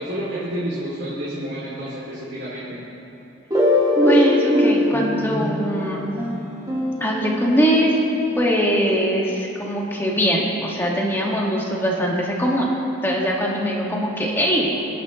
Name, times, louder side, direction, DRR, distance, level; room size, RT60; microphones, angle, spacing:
voice 1, 0.0-2.8, equal, 60° right, -8 dB, 2.6 m, -29 dB
sound 1, 3.5-8.1, left 1 dB, 20° right, 1.9 m, -21 dB
voice 2, 4.1-6.1 7.0-8.0 8.3-12.7 13.0-14.8, equal, 10° left, -3 dB, 1.7 m, -21 dB
26.0 x 11.0 x 3.1 m, 2.9 s
head